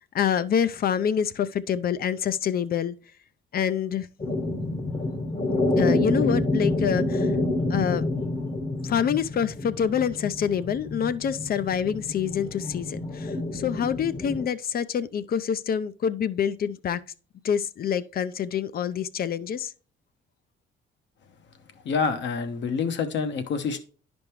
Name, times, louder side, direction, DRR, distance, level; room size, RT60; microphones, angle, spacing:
voice 1, 0.1-3.0 3.5-4.1 5.8-7.4 7.7-8.0 8.8-17.0 17.4-19.7, left 8 dB, 50° left, 0.5 m, -26 dB
sound 1, 4.2-14.5, left 2 dB, 30° left, 1.0 m, -28 dB
voice 2, 21.8-23.8, left 5 dB, 65° left, 1.0 m, -27 dB
10.5 x 5.2 x 3.1 m
cardioid pair, 90°, 20 cm